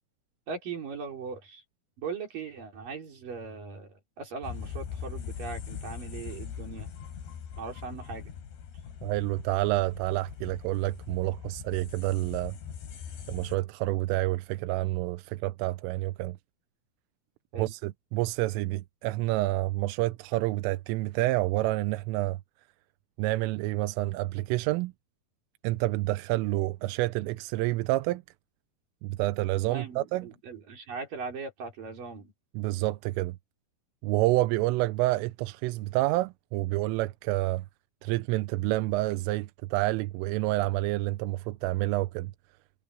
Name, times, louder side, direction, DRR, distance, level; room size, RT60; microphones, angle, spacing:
voice 1, 0.5-1.6 2.0-6.9 7.6-8.4 17.5-17.7 29.7-32.3, right 5 dB, 45° right, 5.5 m, -39 dB
sound 1, 4.4-13.6, left 8 dB, 60° left, 4.6 m, -41 dB
voice 2, 9.0-12.5 13.3-16.4 17.6-22.4 23.2-24.9 25.6-28.2 29.0-30.3 32.6-33.4 34.0-37.7 38.0-42.3, right 18 dB, 85° right, 3.2 m, -28 dB
omnidirectional pair, 5.9 m